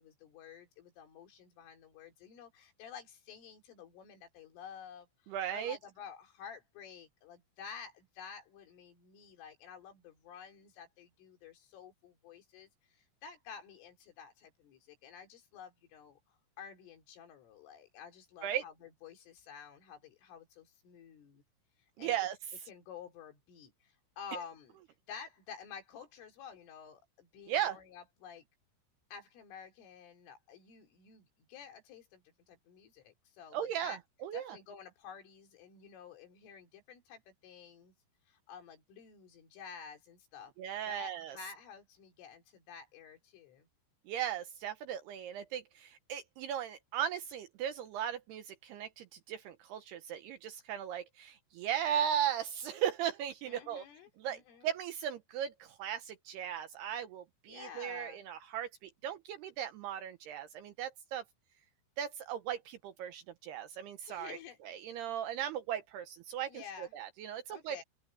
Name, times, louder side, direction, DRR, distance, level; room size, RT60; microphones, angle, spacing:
voice 1, 0.0-21.4 22.0-22.2 22.7-24.8 25.1-28.5 29.1-34.0 34.3-37.9 38.3-40.5 40.9-43.7 53.5-54.8 57.5-58.3 64.1-64.6 66.5-66.9 67.5-67.8, left 7 dB, 85° left, 6.3 m, -51 dB
voice 2, 5.3-5.8 18.4-18.6 22.0-22.4 27.5-27.8 33.5-34.6 40.6-41.4 44.1-53.8 54.2-61.2 62.0-64.4 64.7-67.8, right 10 dB, 75° right, 2.5 m, -37 dB
open air
omnidirectional pair, 5.6 m